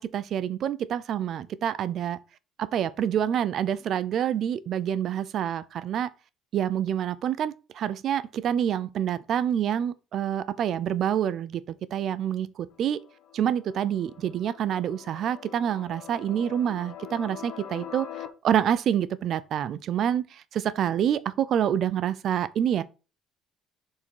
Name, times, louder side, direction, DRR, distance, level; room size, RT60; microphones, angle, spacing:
voice 1, 0.0-2.2 2.6-6.1 6.5-13.0 13.3-22.8, right 9 dB, 55° right, 0.6 m, -27 dB
sound 1, 12.7-18.3, left 9 dB, 75° left, 1.3 m, -44 dB
7.0 x 4.7 x 4.7 m
cardioid pair, 125°, 0 cm